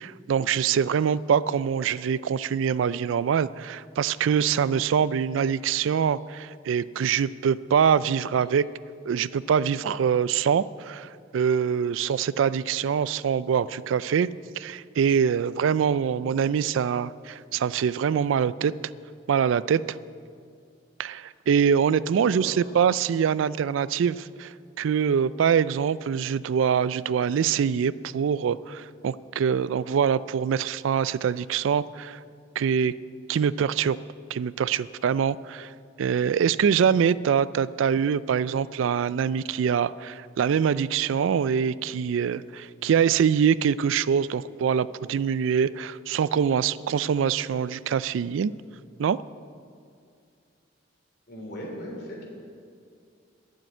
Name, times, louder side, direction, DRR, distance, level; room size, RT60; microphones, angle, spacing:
voice 1, 0.0-8.7 9.1-14.3 14.6-18.7 19.3-20.0 21.0-32.2 32.6-32.9 33.3-34.0 34.3-35.7 36.0-48.5 49.0-49.2, right 7 dB, 85° right, 18 dB, 0.3 m, -24 dB
voice 2, 22.2-22.7 51.3-52.2, equal, 55° left, -1 dB, 3.5 m, -38 dB
12.0 x 7.5 x 9.1 m, 2.3 s
head